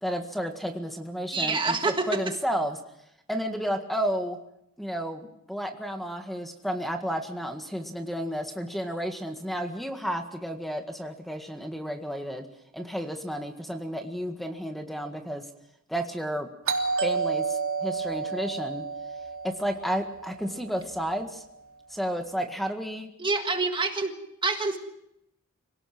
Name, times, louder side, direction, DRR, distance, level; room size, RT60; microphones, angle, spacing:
voice 1, 0.0-2.8 3.3-4.4 4.8-12.5 12.7-15.5 15.9-16.5 17.0-18.9 19.4-21.4 21.9-23.1, equal, ahead, 5 dB, 1.8 m, -32 dB
voice 2, 1.3-2.1 23.2-24.1 24.4-24.8, right 3 dB, 25° right, 5 dB, 1.7 m, -26 dB
Doorbell, 16.7-21.3, right 5 dB, 65° right, 3.0 m, -31 dB
26.0 x 18.0 x 6.1 m, 0.80 s
head